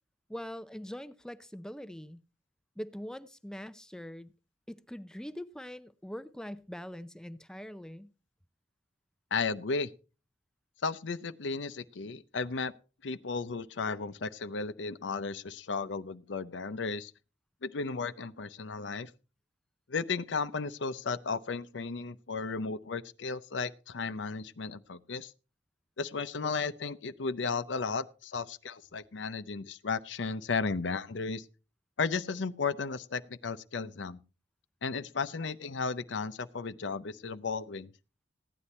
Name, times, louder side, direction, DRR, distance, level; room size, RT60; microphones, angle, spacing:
voice 1, 0.3-2.2 2.8-4.3 4.7-8.1, equal, 5° left, 0.5 m, -43 dB
voice 2, 9.3-9.9 10.8-12.7 13.0-17.1 17.6-19.1 19.9-25.3 26.0-31.5 32.0-34.2 34.8-37.9, left 4 dB, 90° left, 0.6 m, -34 dB
15.5 x 9.9 x 4.2 m
head